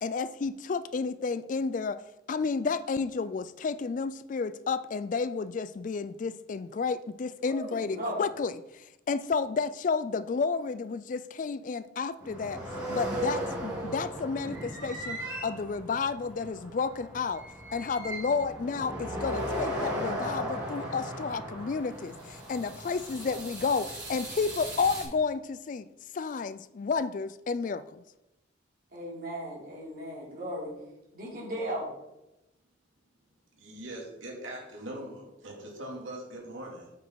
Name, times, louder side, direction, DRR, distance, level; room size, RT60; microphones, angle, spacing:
voice 1, 0.0-2.0 2.3-12.6 12.9-17.4 17.7-25.9 26.1-28.0, left 4 dB, 40° left, 15 dB, 0.3 m, -31 dB
voice 2, 7.4-8.2 28.9-30.7 31.1-31.9, equal, 50° right, -5 dB, 3.5 m, -36 dB
sound 1, 12.2-25.0, right 1 dB, 20° right, 2.9 m, -37 dB
voice 3, 33.6-36.9, right 1 dB, 85° right, -1 dB, 2.5 m, -41 dB
8.2 x 6.3 x 4.6 m, 0.92 s
head